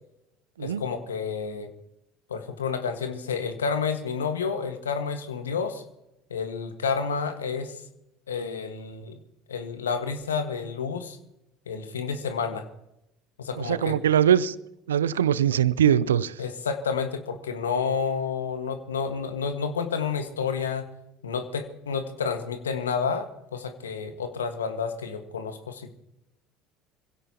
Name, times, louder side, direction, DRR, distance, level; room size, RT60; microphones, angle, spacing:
voice 1, 0.6-1.7 2.3-5.8 6.3-7.8 8.3-9.2 9.5-11.2 11.7-12.6 13.4-14.0 16.4-20.9 21.2-25.9, left 5 dB, 85° left, 1.6 m, -30 dB
voice 2, 13.6-14.5 14.9-16.3, right 9 dB, 80° right, 0.6 m, -22 dB
25.5 x 16.5 x 3.0 m
figure-of-eight pair, 65°, 0 cm